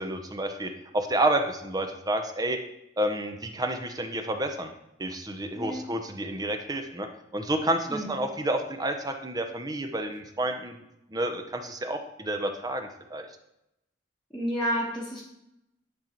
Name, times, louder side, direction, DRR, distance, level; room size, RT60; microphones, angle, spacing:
voice 1, 0.0-2.6 3.0-4.7 5.0-7.1 7.3-10.7 11.1-13.2, right 1 dB, 20° right, 5 dB, 0.7 m, -30 dB
voice 2, 14.3-15.2, equal, ahead, -8 dB, 1.2 m, -30 dB
10.0 x 4.0 x 4.4 m, 0.85 s
head